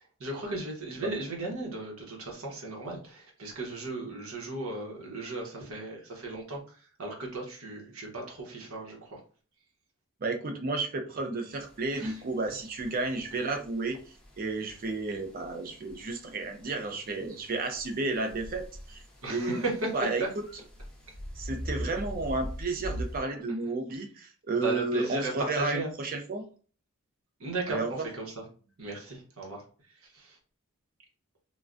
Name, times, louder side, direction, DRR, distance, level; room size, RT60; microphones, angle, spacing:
voice 1, 0.2-6.6 7.0-9.2 12.0-12.1 19.2-19.9 24.6-25.9 27.4-27.8 28.1-28.2 28.8-29.6 30.1-30.4, right 2 dB, 65° right, 0 dB, 0.9 m, -36 dB
voice 2, 10.2-19.6 19.9-20.4 21.4-26.4 27.7-28.1, right 3 dB, 40° right, 5 dB, 0.4 m, -32 dB
sound 1, 11.5-23.2, equal, 5° left, 0.6 m, -43 dB
3.2 x 2.2 x 2.5 m, 0.40 s
head